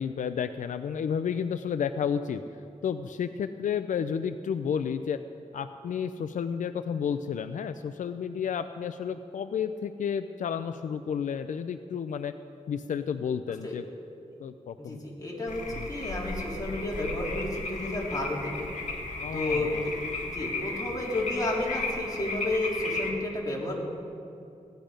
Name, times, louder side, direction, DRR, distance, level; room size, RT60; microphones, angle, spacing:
voice 1, 0.0-2.4 2.8-5.2 5.5-12.3 12.7-13.8 14.4-15.0 15.7-15.8 19.2-19.9, left 7 dB, 85° left, 10 dB, 0.4 m, -31 dB
voice 2, 14.8-18.7 19.3-19.9 20.3-23.7, left 1 dB, 30° left, -4 dB, 3.5 m, -31 dB
sound 1, 15.5-23.1, left 2 dB, 70° left, 1.9 m, -35 dB
17.0 x 10.5 x 5.1 m, 2.6 s
cardioid pair, 70°, 13 cm